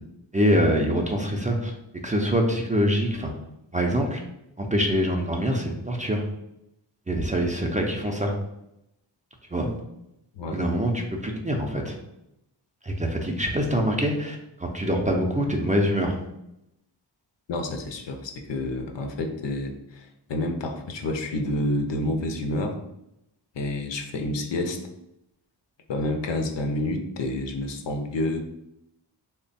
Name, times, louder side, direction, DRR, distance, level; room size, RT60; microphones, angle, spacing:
voice 1, 0.3-1.7 2.0-3.3 3.7-4.2 4.6-6.2 7.1-8.3 9.5-9.7 10.5-12.0 12.8-16.2, equal, 15° right, 1 dB, 0.5 m, -24 dB
voice 2, 17.5-22.8 23.5-24.8 25.9-28.4, left 1 dB, 70° left, 5 dB, 0.6 m, -29 dB
3.3 x 2.2 x 4.0 m, 0.83 s
wide cardioid pair, 80°, 45 cm